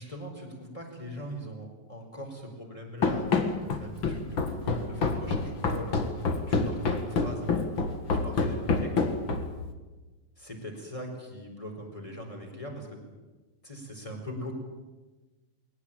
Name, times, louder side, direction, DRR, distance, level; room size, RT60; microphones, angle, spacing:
voice 1, 0.0-3.3 3.5-6.0 6.5-7.5 8.1-8.9 10.4-13.0 13.6-14.5, equal, 10° left, 2 dB, 4.5 m, -41 dB
Run, 3.0-9.6, left 4 dB, 40° left, 2.2 m, -27 dB
22.0 x 18.0 x 8.9 m, 1.2 s
omnidirectional pair, 4.0 m